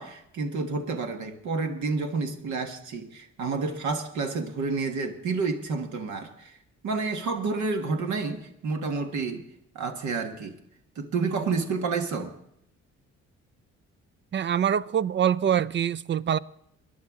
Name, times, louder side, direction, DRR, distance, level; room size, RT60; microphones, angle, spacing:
voice 1, 0.0-6.6 6.8-9.4 9.7-10.5 10.9-12.3, right 4 dB, 70° right, 1.6 m, -29 dB
voice 2, 14.3-16.4, right 9 dB, 40° right, 0.4 m, -24 dB
21.5 x 11.0 x 3.7 m
cardioid pair, 90°, 30 cm